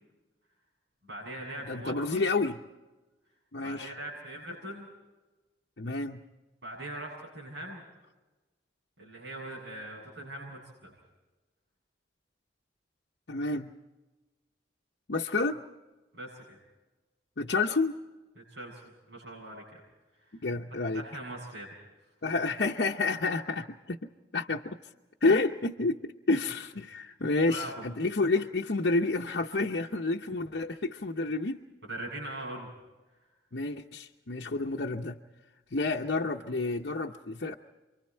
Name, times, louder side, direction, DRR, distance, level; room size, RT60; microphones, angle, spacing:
voice 1, 1.1-2.2 3.6-4.9 6.6-7.8 9.0-10.9 16.1-16.6 18.4-18.8 19.1-19.6 20.2-21.7 27.5-27.7 31.9-32.7, right 1 dB, 75° right, -5 dB, 7.5 m, -41 dB
voice 2, 1.7-2.6 3.5-3.9 5.8-6.2 13.3-13.7 15.1-15.6 17.4-17.9 20.3-21.0 22.2-24.8 25.2-31.6 33.5-35.2 35.7-37.5, left 3 dB, 70° left, 1 dB, 0.9 m, -29 dB
28.5 x 24.0 x 4.5 m, 1.2 s
head